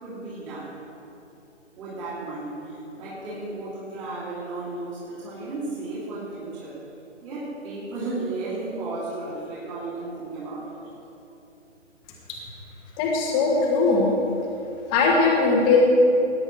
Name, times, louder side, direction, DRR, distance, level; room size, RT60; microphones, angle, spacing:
voice 1, 0.0-0.7 1.8-6.8 7.2-10.8, right 2 dB, 25° right, -9 dB, 2.7 m, -34 dB
voice 2, 13.0-14.1 14.9-15.8, left 4 dB, 10° left, -2 dB, 1.1 m, -20 dB
19.0 x 10.0 x 3.2 m, 2.8 s
figure-of-eight pair, 145°, 38 cm